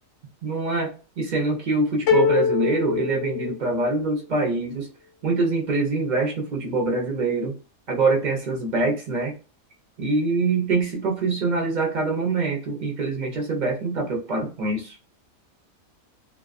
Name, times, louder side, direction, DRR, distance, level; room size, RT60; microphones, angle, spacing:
voice 1, 0.4-4.9 5.2-7.5 7.9-9.3 10.0-15.0, right 3 dB, 50° right, 0 dB, 0.6 m, -24 dB
sound 1, 2.1-4.1, left 6 dB, 65° left, 0.8 m, -23 dB
2.3 x 2.2 x 2.4 m, 0.34 s
omnidirectional pair, 1.4 m